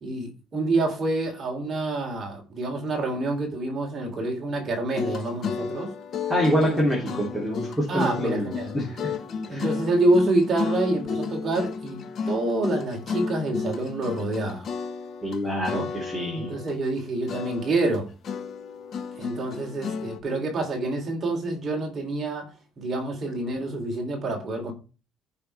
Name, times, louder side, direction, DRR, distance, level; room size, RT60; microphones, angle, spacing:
voice 1, 0.0-5.9 6.7-7.6 7.9-8.7 9.5-14.7 15.7-15.9 16.4-18.1 19.2-22.5 22.8-24.7, right 2 dB, 30° right, 3.0 m, -27 dB
sound 1, 4.9-15.4 15.7-17.0 17.3-20.2, left 5 dB, 45° left, 1.3 m, -33 dB
voice 2, 6.3-9.1 9.5-9.6 15.2-16.5, equal, 5° left, 3.0 m, -26 dB
14.5 x 5.9 x 3.3 m
cardioid pair, 155°, 0 cm